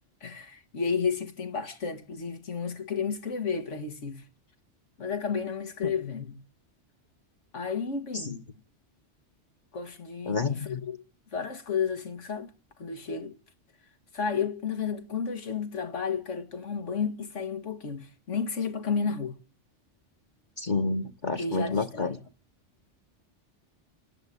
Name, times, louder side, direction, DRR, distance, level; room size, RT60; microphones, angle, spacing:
voice 1, 0.2-4.3 5.0-6.4 7.5-8.5 9.7-11.0 11.3-12.5 12.8-13.4 14.1-19.3 21.4-22.2, left 6 dB, 85° left, 2.0 m, -32 dB
voice 2, 10.3-10.8 20.6-22.1, left 4 dB, 40° left, 1.3 m, -29 dB
28.5 x 11.0 x 10.0 m
omnidirectional pair, 1.2 m